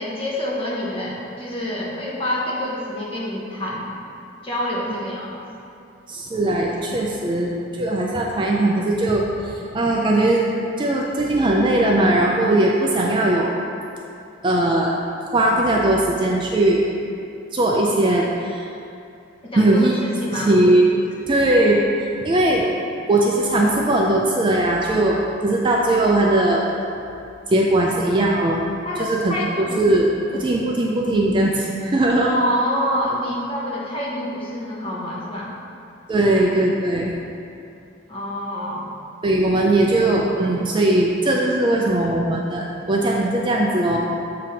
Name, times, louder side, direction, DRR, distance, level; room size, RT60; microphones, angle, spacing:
voice 1, 0.0-3.9 4.4-5.4 19.4-19.9 20.2-20.5 27.8-27.9 28.8-29.8 32.2-35.5 38.1-38.8, equal, 25° left, -6 dB, 1.0 m, -27 dB
voice 2, 6.1-10.5 10.8-13.5 14.4-15.0 15.3-16.8 17.5-18.7 19.6-20.0 20.3-20.8 21.3-21.8 22.2-22.7 23.1-26.6 27.5-28.6 29.0-29.4 29.8-32.3 36.1-37.1 39.2-44.0, right 1 dB, 25° right, -2 dB, 0.4 m, -19 dB
7.4 x 2.8 x 5.1 m, 2.6 s
head